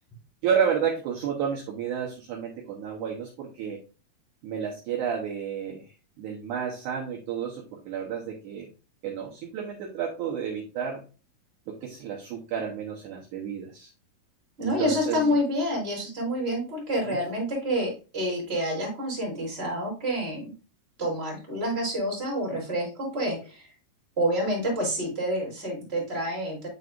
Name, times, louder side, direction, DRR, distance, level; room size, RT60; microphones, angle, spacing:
voice 1, 0.4-3.8 4.4-5.8 6.2-8.7 9.0-11.0 11.7-13.9 14.6-15.3 17.1-17.2, right 7 dB, 70° right, -1 dB, 2.0 m, -31 dB
voice 2, 14.6-20.5 21.0-23.7 24.2-26.7, equal, 15° right, -4 dB, 2.8 m, -28 dB
9.5 x 4.0 x 2.5 m, 0.32 s
omnidirectional pair, 4.5 m